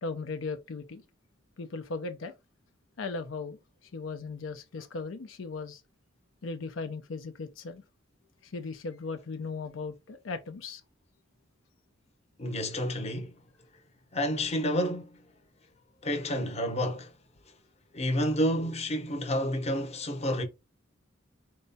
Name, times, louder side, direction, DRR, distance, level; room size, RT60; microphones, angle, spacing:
voice 1, 0.0-1.0 1.6-2.3 3.0-3.6 3.9-5.8 6.4-7.8 8.4-10.8, left 4 dB, 85° left, 0.5 m, -37 dB
voice 2, 12.4-13.3 14.1-15.2 16.0-17.1 17.9-20.4, equal, 35° left, 0.8 m, -29 dB
4.6 x 2.1 x 4.0 m
head